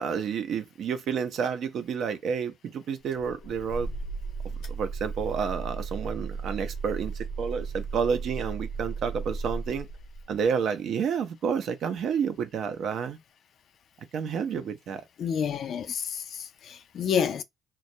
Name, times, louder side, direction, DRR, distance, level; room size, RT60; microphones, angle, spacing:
voice 1, 0.0-3.9 4.7-9.9 10.3-13.2 14.1-15.0, right 6 dB, 70° right, 0.5 m, -30 dB
sound 1, 3.1-10.5, right 4 dB, 90° left, 0.9 m, -35 dB
voice 2, 15.2-17.4, left 7 dB, 65° left, 0.3 m, -29 dB
2.3 x 2.0 x 2.7 m
cardioid pair, 90°, 0 cm